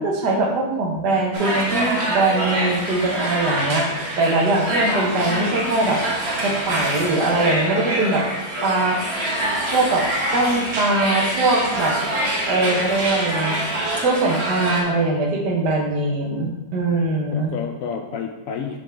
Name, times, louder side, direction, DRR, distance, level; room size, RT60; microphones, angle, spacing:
voice 1, 0.0-3.9 4.2-6.0 6.4-8.2 8.6-9.0 9.7-10.1 10.3-12.0 12.5-13.6 14.0-17.5, right 2 dB, 85° right, 0 dB, 1.7 m, -21 dB
sound 1, 1.3-14.8, right 1 dB, 45° right, 1.3 m, -25 dB
voice 2, 5.1-5.6 17.3-18.8, left 7 dB, 70° left, 4 dB, 0.8 m, -30 dB
7.7 x 4.7 x 3.4 m, 1.1 s
omnidirectional pair, 1.8 m